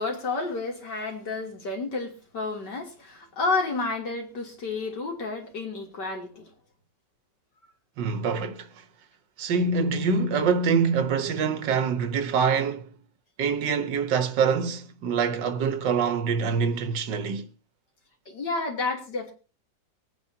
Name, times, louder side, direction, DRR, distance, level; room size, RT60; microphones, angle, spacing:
voice 1, 0.0-6.5 18.3-19.3, left 3 dB, 65° left, 3.6 m, -30 dB
voice 2, 8.0-8.7 9.4-12.9 13.4-17.5, right 5 dB, 75° right, 1.7 m, -25 dB
23.5 x 9.7 x 2.8 m
omnidirectional pair, 2.0 m